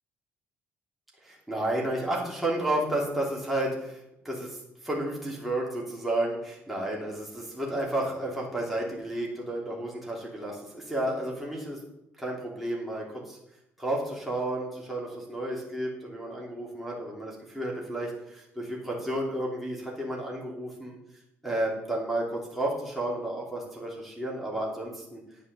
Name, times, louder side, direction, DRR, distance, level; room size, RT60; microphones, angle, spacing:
voice 1, 1.2-4.6 4.8-11.8 12.2-13.4 13.8-21.0 21.4-25.2, right 1 dB, ahead, -4 dB, 3.1 m, -32 dB
10.0 x 5.6 x 6.9 m, 0.84 s
cardioid pair, 85°, 5 cm